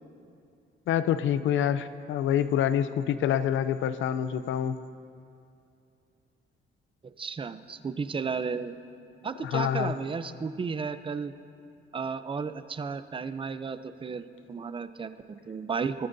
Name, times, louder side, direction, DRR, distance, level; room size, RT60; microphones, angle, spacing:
voice 1, 0.9-4.8 9.4-9.9, left 9 dB, 75° left, 13 dB, 0.6 m, -26 dB
voice 2, 7.0-8.7 9.2-11.3 11.9-16.1, right 5 dB, 25° right, 11 dB, 0.6 m, -33 dB
21.5 x 13.5 x 2.7 m, 2.6 s
cardioid pair, 90°, 20 cm